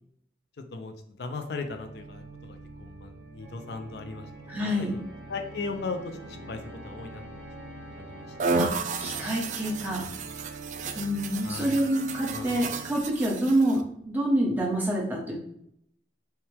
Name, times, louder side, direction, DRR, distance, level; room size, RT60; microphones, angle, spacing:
voice 1, 0.7-4.3 4.6-5.0 5.3-8.3 11.4-11.8 12.3-12.5, left 4 dB, 70° left, 6 dB, 0.4 m, -38 dB
Organ, 1.5-13.3, right 2 dB, 75° right, 1.5 m, -44 dB
voice 2, 4.5-4.9 8.5-10.1 11.0-13.8 14.0-15.4, right 1 dB, 10° right, -3 dB, 0.9 m, -27 dB
sound 1, 8.4-13.8, right 4 dB, 45° right, 0.3 m, -33 dB
5.6 x 2.2 x 3.3 m, 0.71 s
head